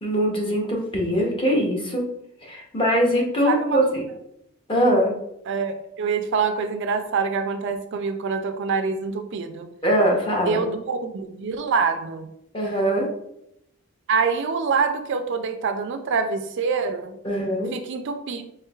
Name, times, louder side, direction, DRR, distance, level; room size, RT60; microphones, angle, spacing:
voice 1, 0.0-2.0 2.4-4.0 4.7-5.1 9.8-10.6 12.5-13.1 17.2-17.7, equal, 25° left, -1 dB, 0.8 m, -22 dB
voice 2, 3.4-4.0 5.5-9.7 10.4-12.3 14.1-17.2 17.7-18.4, right 5 dB, 55° right, 7 dB, 0.3 m, -25 dB
4.4 x 3.3 x 2.3 m, 0.81 s
head